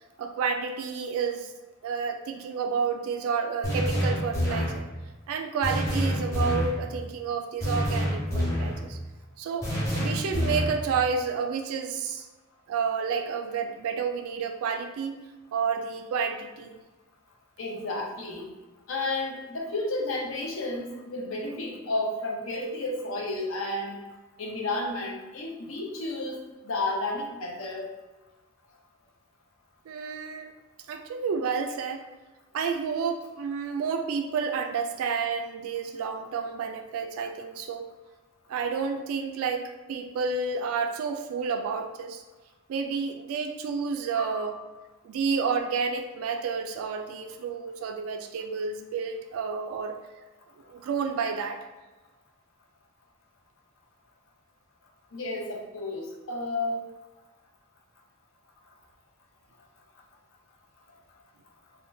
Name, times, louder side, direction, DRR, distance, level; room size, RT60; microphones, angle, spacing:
voice 1, 0.2-1.5 1.8-4.9 5.3-9.0 9.4-9.7 9.9-12.3 12.7-15.2 15.5-16.8 29.9-30.5 30.9-32.1 32.5-37.9 38.5-42.2 42.7-44.6 45.0-50.0 50.7-51.6, right 5 dB, 90° right, 4 dB, 0.3 m, -30 dB
sound 1, 3.6-4.8 5.6-6.8 7.6-8.8 9.6-10.8, equal, 15° left, 0.7 m, -27 dB
voice 2, 17.6-18.5 18.9-24.0 24.4-27.9 44.1-44.6 55.1-56.9, left 2 dB, 75° left, 0 dB, 0.6 m, -32 dB
3.5 x 2.2 x 2.6 m, 1.2 s
head